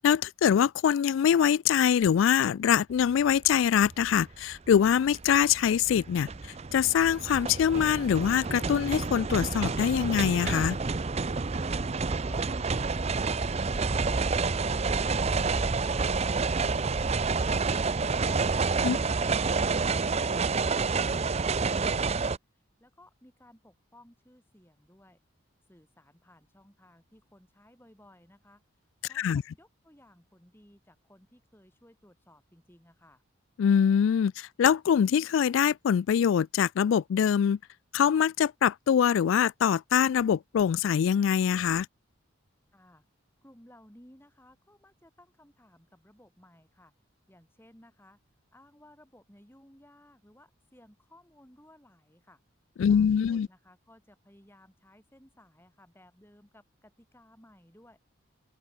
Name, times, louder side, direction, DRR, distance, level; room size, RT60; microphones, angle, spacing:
voice 1, 0.0-10.8 18.8-19.0 29.1-29.4 33.6-37.6 37.9-41.9 52.8-53.5, left 8 dB, 75° left, 0.3 m, -24 dB
sound 1, 3.4-3.5 3.9-22.4, right 4 dB, 30° right, 0.5 m, -29 dB
voice 2, 22.8-25.2 25.7-28.6 29.0-33.2 42.7-43.0 43.4-46.9 47.3-48.2 48.5-52.4 52.9-58.0, left 1 dB, 10° left, 6.4 m, -58 dB
open air
head